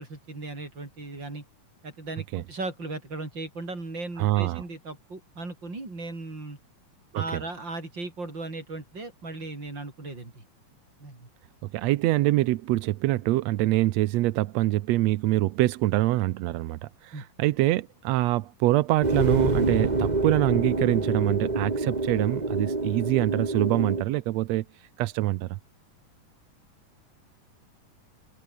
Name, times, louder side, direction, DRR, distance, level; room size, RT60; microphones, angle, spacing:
voice 1, 0.0-1.4 1.8-6.6 7.1-10.4 11.0-11.3 17.1-17.3, right 3 dB, 35° right, 6.9 m, -37 dB
voice 2, 4.2-4.6 7.1-7.4 11.6-24.7 25.0-25.6, right 16 dB, 75° right, 1.6 m, -25 dB
sound 1, 19.0-24.0, right 2 dB, 15° right, 1.7 m, -26 dB
omnidirectional pair, 3.7 m